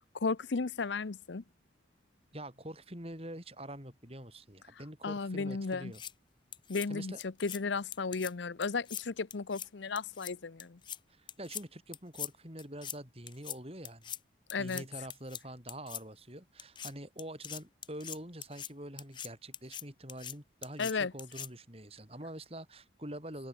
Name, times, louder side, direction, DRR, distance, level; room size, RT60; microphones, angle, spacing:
voice 1, 0.1-1.4 5.0-5.9 6.7-10.8 14.5-14.8 20.8-21.1, left 4 dB, 70° left, 0.7 m, -34 dB
voice 2, 2.3-6.0 6.9-7.2 11.1-14.1 14.6-23.5, right 1 dB, 30° right, 6.8 m, -45 dB
sound 1, 5.7-6.1 6.5-6.9 7.2-7.6 7.9-8.3 8.6-9.0 9.3-9.7 10.0-10.3 10.6-11.0 11.3-11.6 11.9-12.3 12.6-13.0 13.3-13.6 13.9-14.2 14.5-14.8 15.1-15.4 15.7-16.0 16.6-16.9 17.2-18.7 19.0-19.3 19.5-19.8 20.1-20.3 20.6-20.9 21.2-21.5, left 10 dB, 25° left, 0.5 m, -42 dB
head